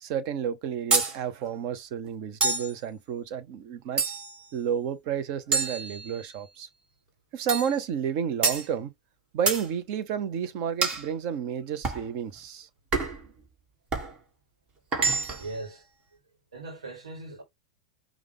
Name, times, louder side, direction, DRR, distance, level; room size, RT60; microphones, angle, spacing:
voice 1, 0.0-4.0 4.5-6.7 7.3-8.9 9.3-12.7, right 8 dB, 50° right, 0.8 m, -31 dB
sound 1, 0.9-1.2 2.4-2.8 4.0-4.4 5.5-6.4 7.5-7.8 8.4-8.7 9.5-9.7 10.8-11.1 11.8-12.1 12.9-13.3 13.9-14.1 14.9-15.5, right 4 dB, 30° right, 1.7 m, -27 dB
voice 2, 15.3-15.8 16.5-17.4, right 2 dB, 85° right, 1.4 m, -39 dB
5.0 x 2.4 x 3.4 m
hypercardioid pair, 100°, 3 cm